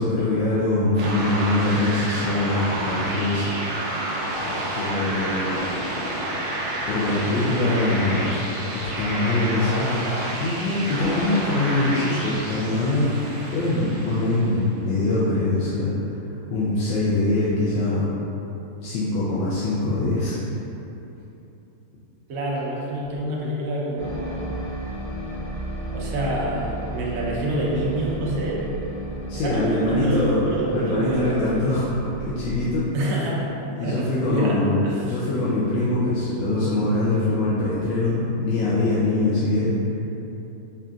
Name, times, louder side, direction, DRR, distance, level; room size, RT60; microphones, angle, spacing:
voice 1, 0.0-4.1 4.4-5.5 6.5-6.6 6.9-8.3 8.7-10.0 10.3-15.9 16.5-18.1 18.8-20.5 29.3-30.4 30.7-31.8 32.2-33.0 33.8-40.0, left 2 dB, 70° left, -9 dB, 1.2 m, -23 dB
sound 1, 1.0-14.7, right 1 dB, 70° right, 1.1 m, -29 dB
voice 2, 22.3-24.5 25.9-28.6 29.4-31.8 32.9-33.5 33.8-34.6 34.8-35.2, right 1 dB, 90° right, -6 dB, 0.7 m, -27 dB
sound 2, 24.0-32.8, right 1 dB, 30° right, 0.6 m, -34 dB
5.5 x 2.5 x 2.4 m, 2.9 s
omnidirectional pair, 2.4 m